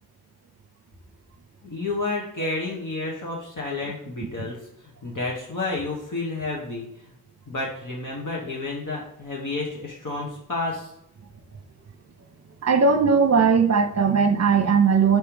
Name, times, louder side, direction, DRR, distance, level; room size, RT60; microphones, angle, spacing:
voice 1, 1.6-7.1 7.5-10.9, left 3 dB, 50° left, 1.8 m, -30 dB
voice 2, 12.6-15.2, right 5 dB, 40° right, 0.9 m, -19 dB
5.5 x 3.7 x 4.7 m
cardioid pair, 50°, 39 cm